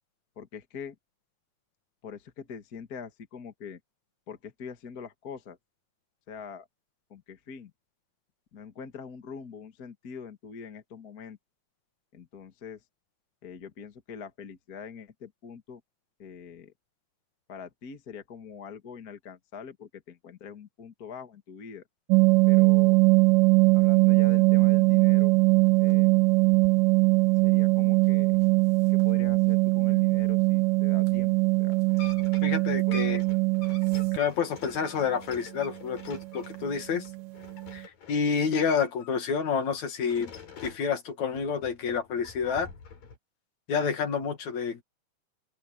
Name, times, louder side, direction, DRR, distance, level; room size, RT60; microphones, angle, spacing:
voice 1, 0.4-1.0 2.0-3.8 4.3-5.6 6.3-6.7 7.1-7.7 8.5-11.4 12.1-12.8 13.4-15.8 16.2-16.7 17.5-21.8 22.5-23.0 23.7-25.3 25.8-26.2 27.4-28.4 28.9-31.3 31.6-31.8 32.7-33.2, left 6 dB, 35° left, 1.7 m, -43 dB
sound 1, 22.1-34.2 36.1-36.2 36.5-36.7 37.1-37.2 37.5-37.8, right 29 dB, 80° right, 2.1 m, -21 dB
sound 2, 31.7-39.1 39.4-40.9 41.3-43.2, left 5 dB, 90° left, 6.4 m, -47 dB
voice 2, 32.4-33.2 34.1-37.1 37.7-40.3 40.6-42.7 43.7-44.8, left 6 dB, 60° left, 3.1 m, -29 dB
open air
omnidirectional pair, 3.9 m